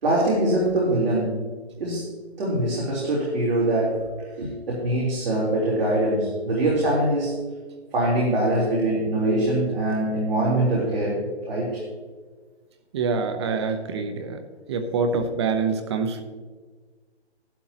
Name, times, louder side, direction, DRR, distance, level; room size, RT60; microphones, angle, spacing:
voice 1, 0.0-1.5 1.8-2.1 2.4-4.0 4.4-7.4 7.9-11.8 15.1-15.2, right 1 dB, 55° right, -5 dB, 3.7 m, -23 dB
voice 2, 12.9-14.4 14.7-16.2, right 5 dB, 25° right, 8 dB, 0.8 m, -25 dB
13.5 x 11.5 x 2.9 m, 1.4 s
hypercardioid pair, 160°, 33 cm